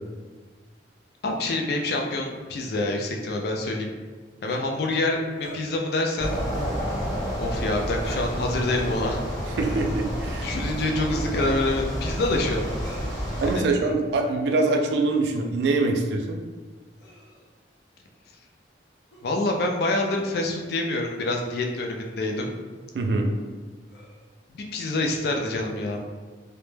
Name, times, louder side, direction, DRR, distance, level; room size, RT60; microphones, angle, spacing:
voice 1, 1.2-3.9 4.4-6.3 7.4-9.2 10.4-12.7 13.4-13.7 19.2-22.5 24.5-26.0, left 2 dB, 55° left, 1 dB, 0.3 m, -26 dB
sound 1, 5.3-5.6 6.4-6.8 7.9-8.4 9.5-10.0 11.1-11.5 12.7-13.1 14.4-14.7 15.8-16.0 17.0-17.4 19.1-19.2 20.3-20.4 21.1-21.3 22.1-22.3 23.9-24.3, equal, 75° left, 0.7 m, -42 dB
sound 2, 6.2-13.6, equal, 20° left, 0.8 m, -30 dB
voice 2, 9.6-10.5 13.4-16.4 22.9-23.3, right 3 dB, 60° right, 2 dB, 0.3 m, -24 dB
2.1 x 2.1 x 3.1 m, 1.4 s
head